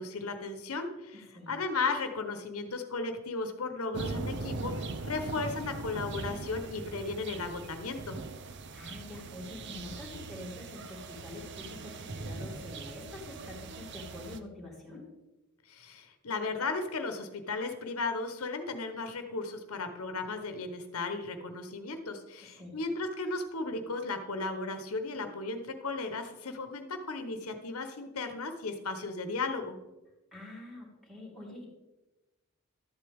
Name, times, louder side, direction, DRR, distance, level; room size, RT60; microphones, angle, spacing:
voice 1, 0.0-8.2 15.7-29.8, left 3 dB, 85° left, 7 dB, 1.0 m, -35 dB
voice 2, 1.1-1.5 8.7-15.0 22.6-22.8 30.3-31.7, left 2 dB, ahead, -5 dB, 2.3 m, -46 dB
sound 1, 3.9-14.4, right 3 dB, 55° right, 0.6 m, -40 dB
12.5 x 7.8 x 3.5 m, 1.1 s
head